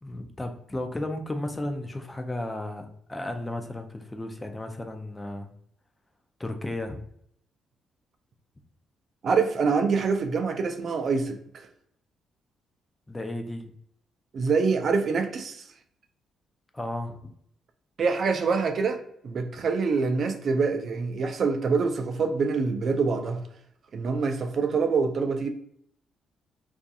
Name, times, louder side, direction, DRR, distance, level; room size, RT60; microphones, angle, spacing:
voice 1, 0.0-5.5 6.4-7.0 13.1-13.7 16.7-17.2, left 1 dB, 15° left, 0.4 m, -34 dB
voice 2, 9.2-11.7 14.3-15.6 18.0-23.4 23.9-25.5, right 4 dB, 55° right, 0.3 m, -25 dB
2.6 x 2.4 x 2.3 m
cardioid pair, 90°, 0 cm